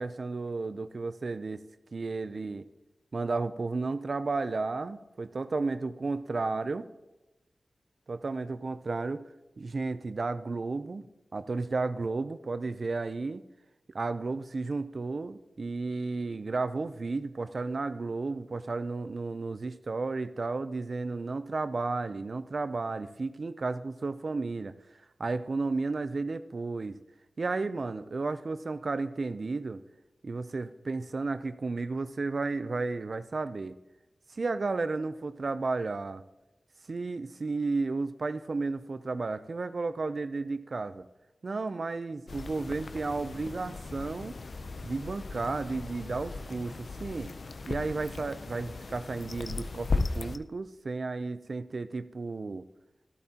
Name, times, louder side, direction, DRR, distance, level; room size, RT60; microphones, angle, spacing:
voice 1, 0.0-1.6 1.9-2.7 3.1-6.9 8.1-9.2 9.6-11.1 11.3-13.4 13.9-24.8 25.2-27.0 27.4-29.8 30.2-33.7 34.3-36.2 36.9-41.1 41.4-44.3 44.8-47.3 47.7-52.6, right 3 dB, 55° right, 12 dB, 0.4 m, -33 dB
sound 1, 42.3-50.4, left 3 dB, 60° left, 0.5 m, -37 dB
13.5 x 12.0 x 2.8 m, 1.0 s
wide cardioid pair, 90°, 0 cm